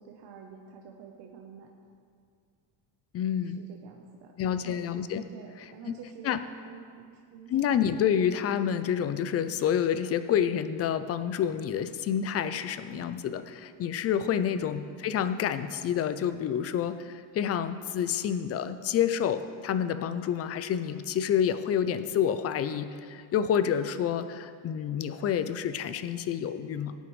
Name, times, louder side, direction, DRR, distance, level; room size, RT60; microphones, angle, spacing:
voice 1, 0.0-2.0 3.4-4.9 5.3-6.4 6.6-7.7, right 7 dB, 55° right, 1 dB, 1.0 m, -49 dB
voice 2, 3.1-3.6 4.4-5.2 5.9-6.0 6.2-6.4 7.5-27.0, left 9 dB, 30° left, 12 dB, 0.4 m, -28 dB
17.5 x 9.2 x 3.2 m, 2.2 s
cardioid pair, 135°, 49 cm